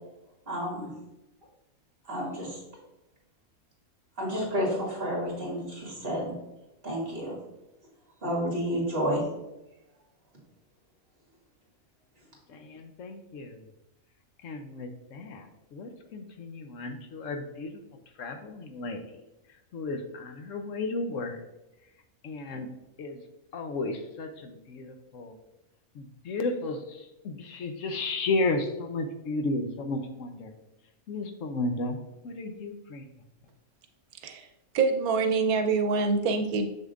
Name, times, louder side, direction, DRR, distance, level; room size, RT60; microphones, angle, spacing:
voice 1, 0.5-0.9 2.1-2.6 4.2-6.3 6.8-7.4 8.2-9.2, equal, 40° right, -3 dB, 2.5 m, -30 dB
voice 2, 12.5-13.6 14.4-17.8 18.2-19.2 19.7-21.4 22.2-22.7 23.0-23.2 23.5-25.4 25.9-30.5 31.1-32.0 32.2-33.0, left 2 dB, 70° left, 6 dB, 1.0 m, -33 dB
voice 3, 34.1-36.7, right 4 dB, 90° right, 7 dB, 1.1 m, -26 dB
7.1 x 6.5 x 2.5 m, 0.95 s
omnidirectional pair, 1.5 m